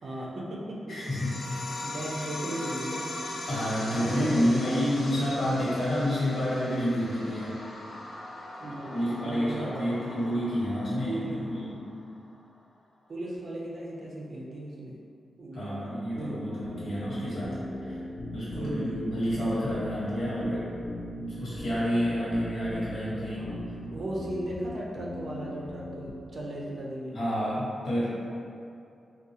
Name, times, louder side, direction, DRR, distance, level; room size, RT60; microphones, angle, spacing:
voice 1, 0.0-1.1 1.8-3.2 3.9-4.7 8.6-10.3 11.0-11.5 13.1-15.0 15.4-16.5 18.5-19.1 23.3-23.6 23.9-27.2, right 1 dB, 55° right, -4 dB, 0.5 m, -37 dB
voice 2, 0.9-1.4 3.5-7.6 8.9-11.8 15.5-18.0 18.3-20.7 21.2-23.5 27.1-28.1, equal, 70° left, -9 dB, 1.2 m, -29 dB
sound 1, 1.0-12.0, left 1 dB, 90° left, 0.5 m, -40 dB
sound 2, 16.1-26.1, left 1 dB, 25° left, 0.3 m, -39 dB
3.6 x 2.3 x 2.7 m, 2.5 s
wide cardioid pair, 140°, 0 cm